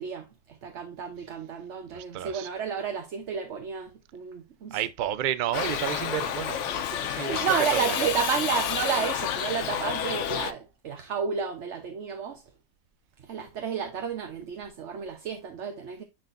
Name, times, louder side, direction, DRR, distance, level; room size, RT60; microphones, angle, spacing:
voice 1, 0.0-4.8 6.9-12.4 13.2-16.0, right 7 dB, 55° right, 1.0 m, -31 dB
voice 2, 1.9-2.5 4.7-6.8 7.1-7.4 7.9-8.1, right 11 dB, 75° right, 0.4 m, -31 dB
Shout / Livestock farm animals working animals, 5.5-10.5, left 9 dB, 60° left, 0.9 m, -30 dB
9.9 x 4.3 x 2.5 m
omnidirectional pair, 1.6 m